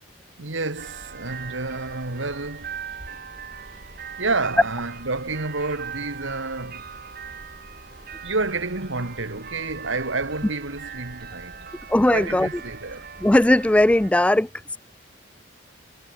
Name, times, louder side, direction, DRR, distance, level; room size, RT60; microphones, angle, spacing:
voice 1, 0.4-2.8 3.7-3.9 4.2-6.9 8.2-11.7 12.1-13.1, right 3 dB, 70° right, 2.4 m, -29 dB
sound 1, 0.8-14.1, right 6 dB, 50° right, 3.8 m, -40 dB
voice 2, 11.9-12.5 13.2-14.8, left 1 dB, 5° left, 0.3 m, -18 dB
head